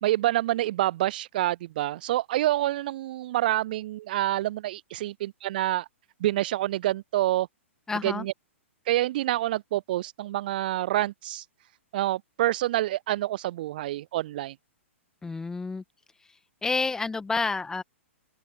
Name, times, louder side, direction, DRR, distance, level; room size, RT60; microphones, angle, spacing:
voice 1, 0.0-5.9 6.2-7.5 8.0-8.3 8.9-11.4 11.9-14.5, right 15 dB, 45° right, 0.4 m, -27 dB
voice 2, 7.9-8.3 15.2-15.8 16.6-17.8, left 4 dB, 10° left, 1.6 m, -29 dB
open air
figure-of-eight pair, 110°, 7 cm